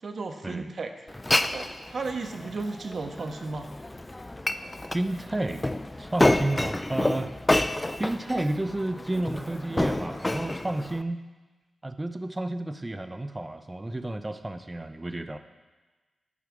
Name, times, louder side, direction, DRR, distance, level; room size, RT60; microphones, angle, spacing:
voice 1, 0.0-0.9 1.5-3.7, right 3 dB, 60° right, 5 dB, 1.4 m, -34 dB
Glass, 1.1-11.0, left 1 dB, 20° left, 0.6 m, -29 dB
voice 2, 4.9-7.4 8.0-11.3 11.8-15.4, right 1 dB, 25° right, 9 dB, 0.8 m, -31 dB
12.0 x 5.7 x 8.6 m, 1.2 s
supercardioid pair, 40°, 0 cm